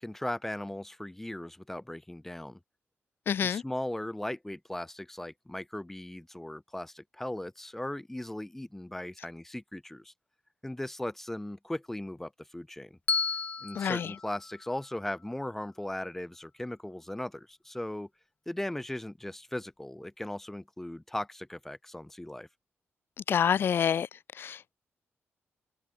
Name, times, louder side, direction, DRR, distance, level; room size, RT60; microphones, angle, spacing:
voice 1, 0.0-2.6 3.4-10.1 10.6-13.0 13.6-18.1 18.4-22.5, left 1 dB, 5° left, 6.8 m, -38 dB
voice 2, 3.3-3.6 13.8-14.1 23.3-24.1 24.4-24.8, left 8 dB, 60° left, 1.7 m, -27 dB
Bell, 13.1-15.3, left 5 dB, 35° left, 2.2 m, -34 dB
wide cardioid pair, 160°, 4 cm